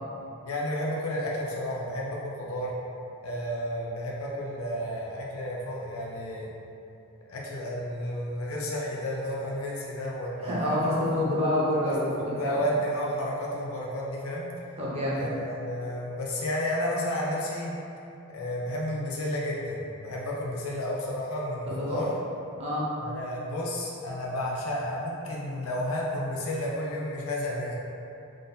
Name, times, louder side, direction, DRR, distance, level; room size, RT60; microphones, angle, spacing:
voice 1, 0.5-2.7 3.2-6.5 7.3-10.9 11.8-14.5 15.1-17.7 18.3-22.1 23.0-27.8, left 1 dB, 85° left, -4 dB, 0.6 m, -32 dB
voice 2, 10.4-12.6 14.8-15.3 21.7-22.0 22.6-22.9, left 1 dB, 30° right, -8 dB, 1.0 m, -27 dB
3.8 x 2.6 x 3.9 m, 2.8 s
head